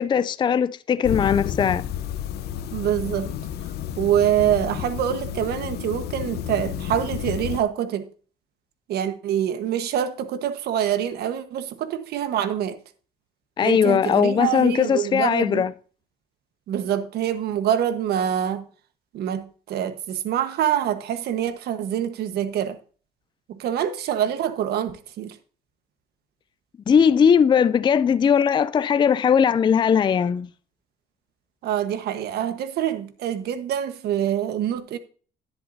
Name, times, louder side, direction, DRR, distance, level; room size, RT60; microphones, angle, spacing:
voice 1, 0.0-1.8 13.6-15.7 26.9-30.5, left 7 dB, 25° left, 0.4 m, -19 dB
sound 1, 1.0-7.6, left 10 dB, 70° left, 0.9 m, -31 dB
voice 2, 2.7-3.3 4.0-8.1 8.9-12.8 13.6-15.7 16.7-18.6 19.1-22.8 23.5-25.3 31.6-35.0, right 10 dB, 70° right, 1.3 m, -25 dB
11.0 x 10.5 x 2.7 m
cardioid pair, 110°, 17 cm